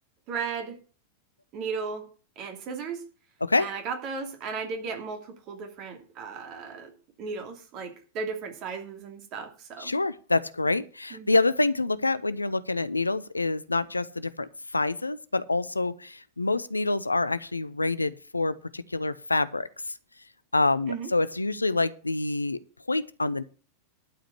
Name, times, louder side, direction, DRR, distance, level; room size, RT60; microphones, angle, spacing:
voice 1, 0.3-0.8 1.5-2.1 2.4-3.0 3.6-6.9 7.2-9.9 11.1-11.4 20.9-21.1, right 5 dB, 40° right, 2.5 m, -35 dB
voice 2, 9.8-19.7 20.5-22.6 22.9-23.4, left 2 dB, 80° left, 0.6 m, -27 dB
12.0 x 5.0 x 8.3 m
figure-of-eight pair, 90°, 0 cm